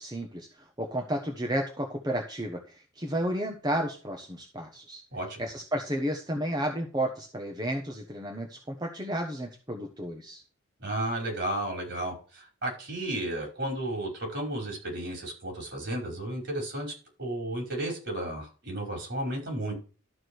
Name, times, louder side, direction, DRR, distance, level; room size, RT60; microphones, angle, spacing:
voice 1, 0.0-5.0 5.4-10.4, right 1 dB, 20° right, 2 dB, 1.2 m, -32 dB
voice 2, 5.1-5.5 10.8-16.9 17.2-19.8, right 1 dB, 55° right, 0 dB, 5.4 m, -33 dB
12.5 x 5.0 x 6.4 m, 0.38 s
head